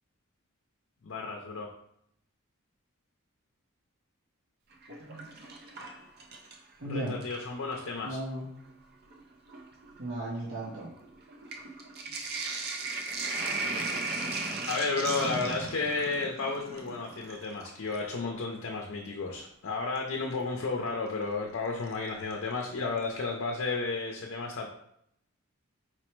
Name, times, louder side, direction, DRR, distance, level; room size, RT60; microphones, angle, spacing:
voice 1, 1.0-1.7 6.8-8.2 14.7-24.7, left 3 dB, 65° left, 1 dB, 0.5 m, -32 dB
Sink (filling or washing), 4.7-6.7 7.1-7.9 8.7-8.8 9.1-18.2 20.0-20.1 21.9-22.3 22.7-22.8 23.0-23.1, right 3 dB, 50° right, 0.5 m, -37 dB
voice 2, 6.8-7.2 8.0-8.5 10.0-10.9, right 1 dB, 65° right, -6 dB, 0.9 m, -35 dB
4.3 x 2.1 x 4.4 m, 0.72 s
head